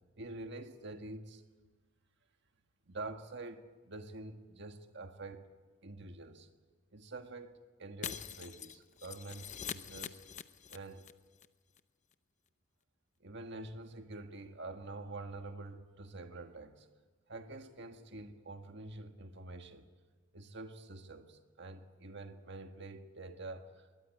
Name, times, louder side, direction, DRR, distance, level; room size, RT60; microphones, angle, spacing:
voice 1, 0.2-1.4 2.9-6.5 6.9-10.2 10.7-11.1 13.2-16.9 17.3-19.9 20.3-23.9, right 2 dB, 60° right, 6 dB, 1.6 m, -47 dB
Shatter, 8.0-11.1 11.4-11.5 11.8-11.9, left 8 dB, 35° left, 0.7 m, -44 dB
22.0 x 18.5 x 8.3 m, 1.3 s
head